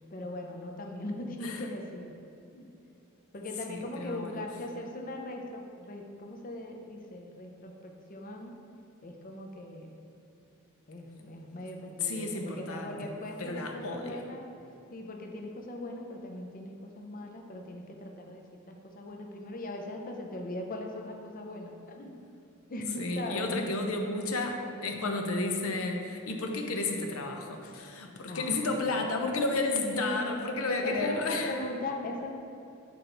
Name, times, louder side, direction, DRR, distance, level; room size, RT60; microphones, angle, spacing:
voice 1, 0.1-2.1 2.5-2.7 3.3-8.6 9.0-9.9 10.9-14.5 14.9-22.2 22.7-24.0 28.3-28.6 29.9-30.3 30.7-32.3, left 1 dB, 40° left, 2 dB, 0.6 m, -39 dB
voice 2, 3.7-4.4 12.0-13.0 13.4-14.2 23.0-31.5, left 2 dB, 75° left, 3 dB, 0.8 m, -32 dB
8.4 x 4.4 x 3.9 m, 2.8 s
head